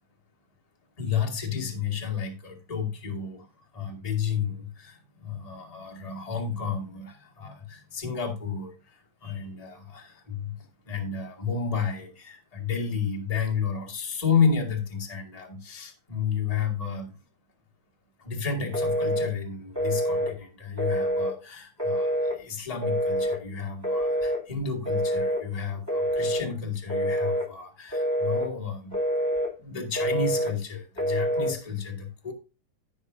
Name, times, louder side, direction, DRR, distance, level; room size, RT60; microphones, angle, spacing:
voice 1, 1.0-17.1 18.2-29.0 29.6-32.3, left 6 dB, 15° left, 1 dB, 1.3 m, -31 dB
Telephone, 18.7-19.3 19.8-20.3 20.8-21.3 21.8-22.4 22.8-23.4 23.8-24.4 24.9-25.4 25.9-26.4 26.9-27.5 27.9-28.5 28.9-29.5 30.0-30.5 31.0-31.5, equal, 10° right, 2.1 m, -26 dB
15.5 x 6.0 x 2.7 m, 0.30 s
omnidirectional pair, 3.6 m